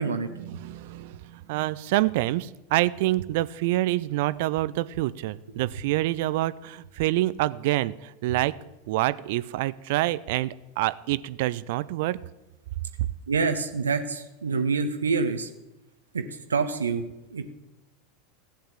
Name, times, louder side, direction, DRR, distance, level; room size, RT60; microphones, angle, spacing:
voice 1, 0.4-8.6 8.9-12.2, right 17 dB, 55° right, 18 dB, 0.4 m, -27 dB
voice 2, 13.3-15.5 16.1-16.2 16.5-17.0 17.3-17.4, right 4 dB, 75° right, 7 dB, 0.9 m, -26 dB
15.0 x 8.7 x 7.3 m, 1.0 s
figure-of-eight pair, 80°, 0 cm